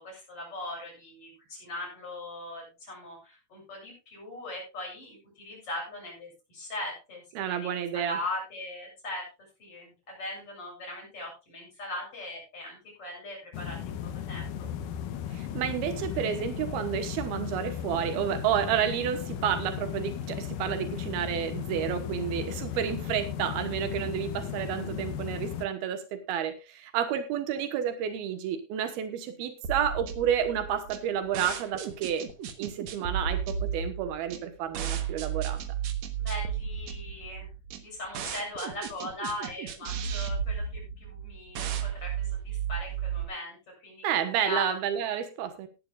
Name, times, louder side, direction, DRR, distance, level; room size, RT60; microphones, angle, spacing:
voice 1, 0.0-9.3 9.6-14.5 22.3-22.4 36.2-37.5 37.8-44.0 44.4-44.8, left 1 dB, 35° left, -1 dB, 8.6 m, -39 dB
voice 2, 7.4-8.2 15.3-32.3 32.6-35.6 44.0-45.7, right 9 dB, 90° right, 9 dB, 3.2 m, -30 dB
sound 1, 13.5-25.7, left 9 dB, 70° left, 2.4 m, -36 dB
sound 2, 29.6-43.2, right 8 dB, 60° right, 2.1 m, -34 dB
17.5 x 11.5 x 2.5 m, 0.28 s
omnidirectional pair, 4.3 m